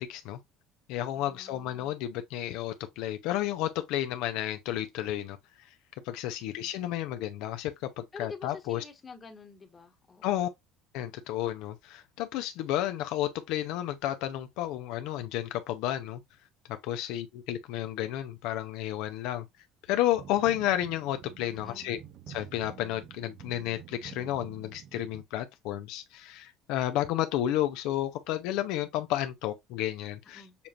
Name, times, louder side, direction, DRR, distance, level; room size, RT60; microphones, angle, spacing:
voice 1, 0.1-0.4 0.9-5.7 6.0-8.8 10.2-10.5 10.9-16.2 16.8-19.4 19.9-22.0 22.3-30.4, left 13 dB, 70° left, 0.6 m, -32 dB
voice 2, 1.1-1.9 6.6-6.7 8.1-10.4 21.5-21.9 30.2-30.6, left 4 dB, 20° left, 1.2 m, -48 dB
sound 1, 20.1-25.2, right 10 dB, 45° right, 0.5 m, -49 dB
6.9 x 2.5 x 2.8 m
cardioid pair, 140°, 0 cm